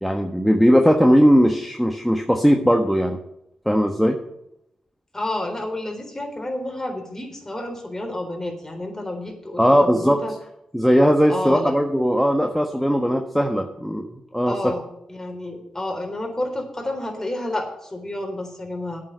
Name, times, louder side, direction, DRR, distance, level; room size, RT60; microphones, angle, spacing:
voice 1, 0.0-3.2 3.6-4.2 9.6-10.2 10.7-14.6, equal, ahead, 4 dB, 1.2 m, -18 dB
voice 2, 5.1-10.3 11.3-11.7 14.5-14.8 15.1-19.0, left 1 dB, 20° left, 2 dB, 3.8 m, -30 dB
8.6 x 6.7 x 8.6 m, 0.81 s
supercardioid pair, 45°, 2 cm